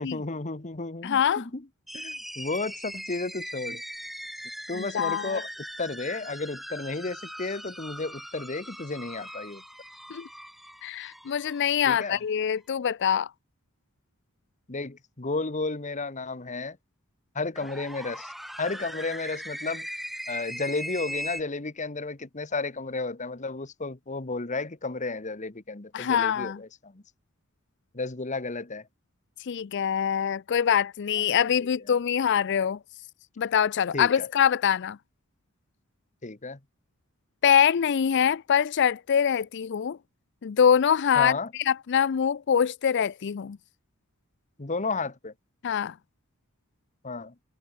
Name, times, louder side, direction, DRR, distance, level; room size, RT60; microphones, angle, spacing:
voice 1, 0.0-1.6 1.9-3.8 4.7-5.5 5.8-9.6 11.9-12.2 14.7-16.8 17.3-18.3 18.6-19.9 20.3-27.0 27.9-28.8 31.2-31.7 33.9-34.3 36.2-36.6 41.1-41.5 44.6-45.3 47.0-47.3, left 3 dB, 35° left, 1.2 m, -33 dB
voice 2, 1.0-1.4 4.7-5.4 10.1-10.3 10.8-13.3 25.9-26.6 29.5-32.8 33.4-35.0 37.4-40.0 40.4-43.6 45.6-45.9, left 8 dB, 55° left, 0.4 m, -24 dB
sound 1, 1.9-12.2 17.6-21.4, equal, ahead, 3.9 m, -40 dB
head